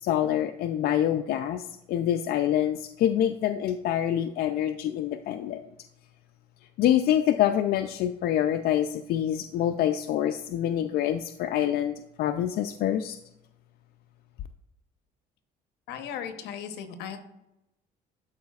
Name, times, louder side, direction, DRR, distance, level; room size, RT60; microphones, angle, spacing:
voice 1, 0.0-5.6 6.8-13.2, left 11 dB, 65° left, 9 dB, 0.4 m, -26 dB
voice 2, 15.9-17.2, left 8 dB, 85° left, 8 dB, 0.9 m, -36 dB
11.5 x 4.7 x 2.4 m, 0.88 s
cardioid pair, 110°, 17 cm